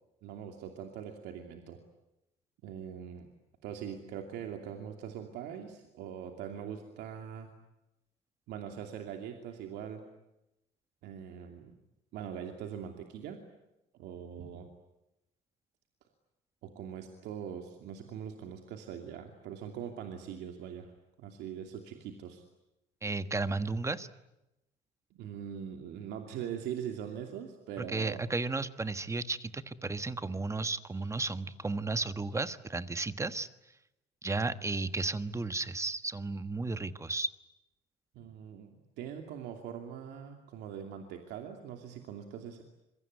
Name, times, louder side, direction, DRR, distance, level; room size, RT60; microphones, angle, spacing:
voice 1, 0.2-1.8 2.6-3.3 3.6-7.5 8.5-10.0 11.0-11.7 12.1-13.4 14.0-14.7 16.6-20.9 21.2-22.4 25.1-28.2 38.1-42.6, right 8 dB, 85° right, 4 dB, 2.8 m, -42 dB
voice 2, 23.0-24.1 27.8-33.5 34.2-37.3, right 3 dB, 15° right, 12 dB, 1.3 m, -34 dB
26.5 x 23.5 x 9.6 m, 0.92 s
cardioid pair, 110°, 17 cm